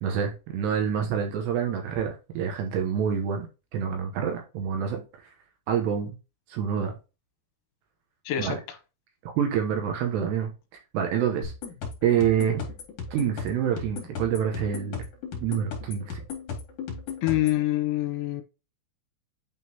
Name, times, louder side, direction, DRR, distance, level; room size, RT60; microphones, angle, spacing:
voice 1, 0.0-3.5 3.7-5.0 5.7-6.2 6.5-6.9 8.4-8.6 9.2-10.5 10.9-11.5 12.0-12.7 13.1-15.0 15.4-16.2, right 8 dB, 75° right, 2.8 m, -27 dB
voice 2, 8.3-8.8 17.2-18.4, left 14 dB, 75° left, 3.1 m, -26 dB
sound 1, 11.4-17.6, left 5 dB, 50° left, 3.0 m, -37 dB
9.4 x 3.8 x 2.9 m
omnidirectional pair, 5.7 m